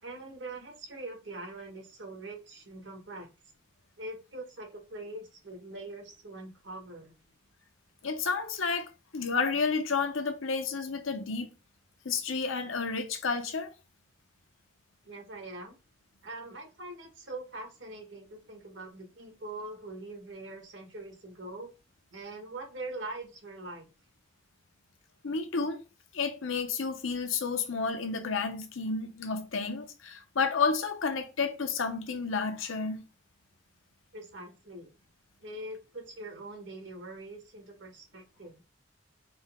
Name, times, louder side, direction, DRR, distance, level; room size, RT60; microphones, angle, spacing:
voice 1, 0.0-3.3 4.0-7.1 15.0-15.8 16.2-21.7 22.1-23.9 34.1-34.9 35.4-38.6, right 2 dB, 70° right, 1.4 m, -43 dB
voice 2, 8.0-11.5 12.0-13.7 25.2-25.8 26.1-33.0, left 4 dB, 85° left, 0.8 m, -31 dB
4.4 x 2.9 x 3.5 m
head